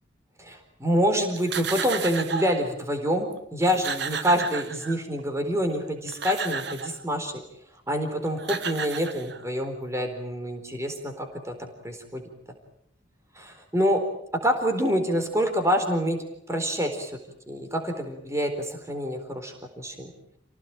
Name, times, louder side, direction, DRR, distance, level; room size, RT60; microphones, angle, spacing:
voice 1, 0.4-7.3 7.9-11.5 11.8-12.2 13.4-14.0 14.4-16.2 16.5-17.1 17.5-20.1, equal, 15° right, 5 dB, 4.1 m, -26 dB
sound 1, 1.4-2.7 3.3-3.4 3.6-5.2 5.9-7.0 8.1-8.2 8.4-9.6, right 6 dB, 60° right, 1.5 m, -33 dB
29.5 x 18.5 x 9.0 m, 0.74 s
head